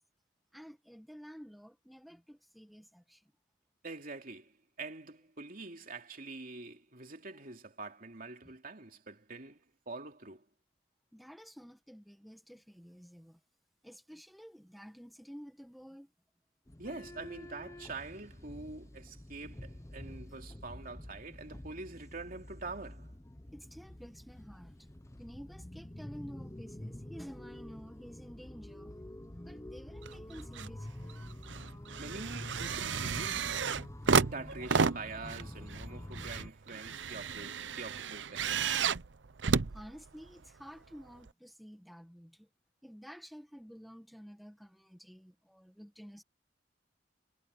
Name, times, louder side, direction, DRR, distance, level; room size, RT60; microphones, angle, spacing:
voice 1, 0.5-3.3 8.4-8.5 11.1-13.4 13.8-16.1 20.3-20.4 23.5-24.9 25.2-29.0 29.4-31.2 39.7-42.5 42.8-46.2, equal, ahead, 1.7 m, -51 dB
voice 2, 3.8-10.4 16.8-23.1 32.0-33.5 34.3-38.7, right 3 dB, 50° right, 3.0 m, -45 dB
sound 1, 16.7-36.5, left 1 dB, 15° left, 0.9 m, -48 dB
sound 2, 30.0-30.7 31.1-40.5 41.3-41.4, right 5 dB, 80° right, 0.7 m, -32 dB
head